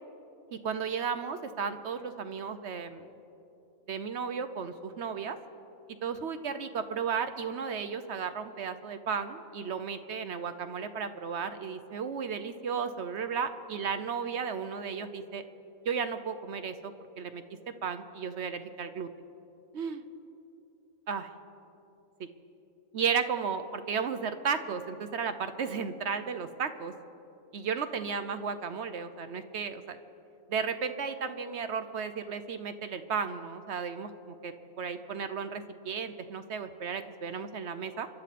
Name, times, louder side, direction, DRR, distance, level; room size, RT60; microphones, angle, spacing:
voice 1, 0.5-3.1 3.9-5.4 6.0-15.4 15.8-17.4 17.8-19.1 19.7-20.0 21.1-21.2 22.2-22.3 22.9-26.9 27.5-30.0 30.5-38.1, right 6 dB, 60° right, 10 dB, 0.9 m, -34 dB
28.5 x 12.0 x 4.2 m, 2.9 s
omnidirectional pair, 1.5 m